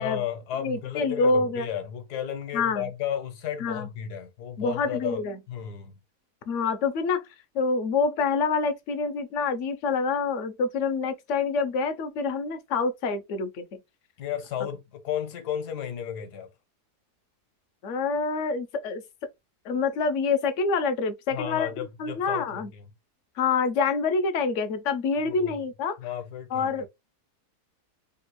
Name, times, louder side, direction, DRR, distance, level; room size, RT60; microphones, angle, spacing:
voice 1, 0.0-5.9 14.2-16.5 21.3-22.9 25.3-25.6 26.0-26.9, left 9 dB, 80° left, 1.4 m, -33 dB
voice 2, 0.6-1.7 2.5-2.9 3.6-3.9 4.6-5.4 6.5-7.2 7.5-13.6 17.8-19.0 19.7-21.7 22.0-22.7 23.4-26.0 26.5-26.9, left 4 dB, 65° left, 0.8 m, -26 dB
3.5 x 2.3 x 3.0 m
omnidirectional pair, 1.7 m